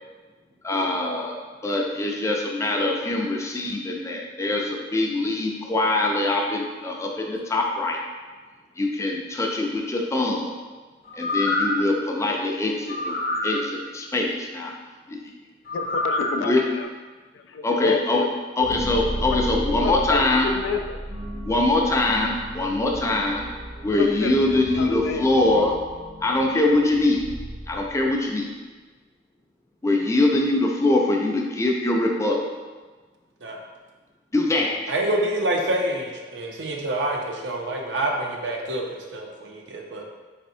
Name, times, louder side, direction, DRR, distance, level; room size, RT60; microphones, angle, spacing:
voice 1, 0.6-8.0 8.8-10.6 11.2-13.2 13.4-14.7 15.1-15.2 16.3-16.6 17.6-18.3 18.6-20.5 21.4-23.5 23.8-25.7 26.2-27.3 27.7-28.5 29.8-32.5 34.3-34.7, left 2 dB, 15° left, 0 dB, 0.4 m, -23 dB
sound 1, 11.1-11.9 12.9-13.6 15.7-16.3 16.8-16.9, left 2 dB, 60° left, 0.7 m, -26 dB
voice 2, 15.7-16.9 17.3-18.4 19.7-21.1 23.9-25.3, left 5 dB, 85° left, 6 dB, 0.3 m, -29 dB
sound 2, 18.6-28.3, equal, 55° right, 1.0 m, -34 dB
voice 3, 34.6-40.0, right 1 dB, 75° right, 1 dB, 0.6 m, -27 dB
4.2 x 3.3 x 2.7 m, 1.3 s
head